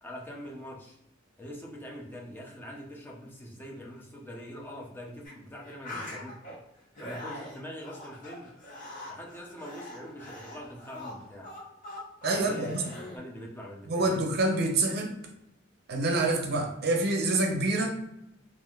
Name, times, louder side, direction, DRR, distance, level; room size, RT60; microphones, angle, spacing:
voice 1, 0.0-1.0 1.4-6.4 7.0-8.5 9.1-11.5 12.4-14.2, equal, 10° left, -2 dB, 0.6 m, -43 dB
sound 1, 5.2-5.3 5.6-6.5 7.0-13.2, left 1 dB, 45° left, 0.9 m, -42 dB
voice 2, 12.2-12.8 13.9-15.1 15.9-17.9, right 2 dB, 55° right, 2 dB, 0.6 m, -26 dB
3.1 x 2.5 x 2.3 m, 0.84 s
head